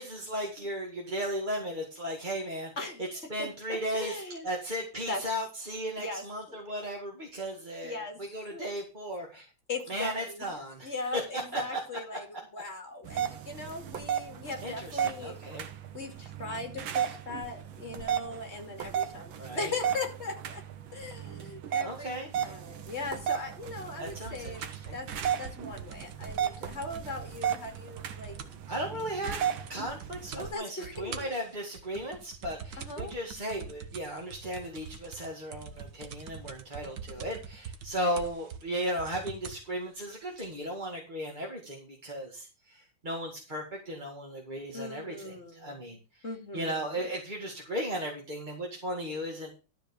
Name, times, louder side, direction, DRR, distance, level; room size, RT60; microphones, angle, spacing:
voice 1, 0.0-2.7 3.3-9.5 9.9-11.8 14.6-15.7 19.4-19.7 21.8-22.3 24.0-25.0 28.7-46.2 46.5-49.5, equal, 25° right, -2 dB, 2.2 m, -36 dB
voice 2, 2.8-4.5 5.1-5.2 6.0-6.6 7.8-8.2 8.5-8.6 9.7-10.5 10.8-15.4 15.9-20.6 20.9-24.6 24.9-25.1 25.4-28.4 30.3-31.4 32.8-33.2 44.7-45.8 46.2-47.1, left 3 dB, 35° left, 3 dB, 2.9 m, -39 dB
sound 1, 13.0-30.5, right 9 dB, 85° right, 1.8 m, -35 dB
sound 2, 23.7-28.7 28.9-29.0 29.3-29.7 30.0-30.5 30.8-39.7 40.4-40.5, right 7 dB, 65° right, 1.7 m, -44 dB
12.5 x 5.2 x 6.8 m, 0.33 s
omnidirectional pair, 2.1 m